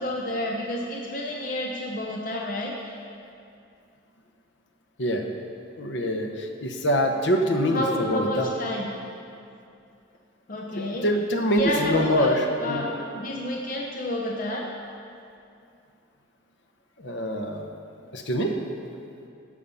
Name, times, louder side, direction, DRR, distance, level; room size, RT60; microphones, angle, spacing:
voice 1, 0.0-3.0 7.7-8.9 10.5-11.1 11.5-14.7, left 1 dB, 45° left, -1 dB, 0.8 m, -29 dB
voice 2, 5.8-8.5 10.8-12.9 17.0-17.7 18.1-18.6, equal, 65° left, 4 dB, 1.0 m, -25 dB
12.5 x 6.5 x 5.6 m, 2.6 s
head